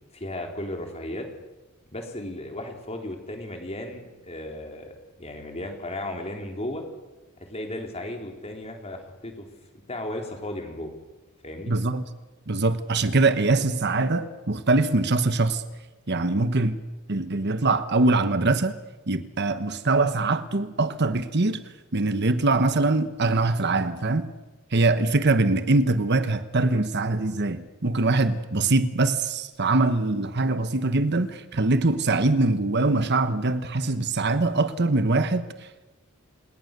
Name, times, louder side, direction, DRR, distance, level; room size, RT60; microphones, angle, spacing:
voice 1, 0.1-1.3 1.9-6.8 7.4-9.5 9.9-10.9 11.4-11.7, left 1 dB, 30° left, 3.9 m, -35 dB
voice 2, 11.7-12.0 12.5-15.6 16.1-16.8 17.1-18.8 19.1-21.6 21.9-24.3 24.7-35.7, right 2 dB, 55° right, 1.1 m, -23 dB
29.0 x 19.0 x 6.8 m
head